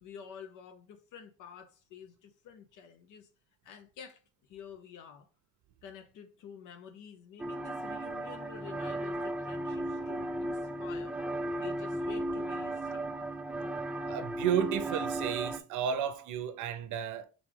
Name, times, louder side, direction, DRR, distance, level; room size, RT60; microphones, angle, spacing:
voice 1, 0.0-3.3 3.6-4.2 4.5-5.3 5.8-11.2 11.6-13.1, left 8 dB, 90° left, 0.6 m, -49 dB
sound 1, 7.4-15.6, right 1 dB, 5° right, 0.4 m, -35 dB
voice 2, 14.1-17.3, right 9 dB, 80° right, 0.6 m, -32 dB
3.7 x 3.1 x 3.7 m
cardioid pair, 90°, 30 cm